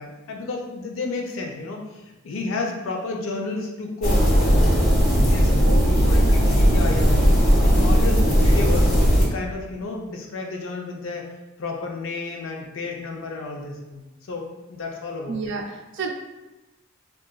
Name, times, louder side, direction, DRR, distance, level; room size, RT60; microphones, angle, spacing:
voice 1, 0.0-4.2 5.3-5.5 5.8-8.9 9.2-11.3 11.6-15.4, left 3 dB, 75° left, 1 dB, 0.5 m, -31 dB
sound 1, 4.0-9.3, equal, 40° left, 0.9 m, -17 dB
voice 2, 5.7-6.4 15.3-16.1, right 3 dB, 65° right, 2 dB, 0.4 m, -31 dB
3.8 x 2.3 x 2.3 m, 1.1 s
head